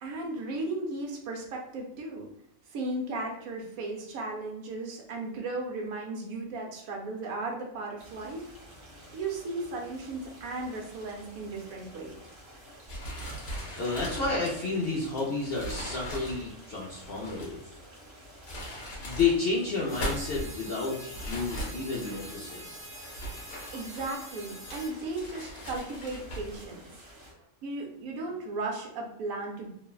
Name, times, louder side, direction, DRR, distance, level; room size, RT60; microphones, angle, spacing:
voice 1, 0.0-2.3 2.7-8.5 9.1-12.1 23.7-26.8 27.6-29.7, right 2 dB, 75° right, 0 dB, 1.1 m, -36 dB
sound 1, 8.0-27.3, equal, 35° right, 0.5 m, -51 dB
sound 2, 12.9-17.6 18.2-19.4 19.7-20.5 21.1-22.3 22.9-24.2 24.7-26.7, equal, 85° left, 1.4 m, -39 dB
voice 2, 13.8-17.6 19.0-22.7, left 4 dB, 65° left, -4 dB, 0.6 m, -30 dB
sound 3, 19.9-24.9, right 1 dB, 25° left, 0.6 m, -45 dB
3.1 x 2.0 x 2.3 m, 0.79 s
omnidirectional pair, 1.5 m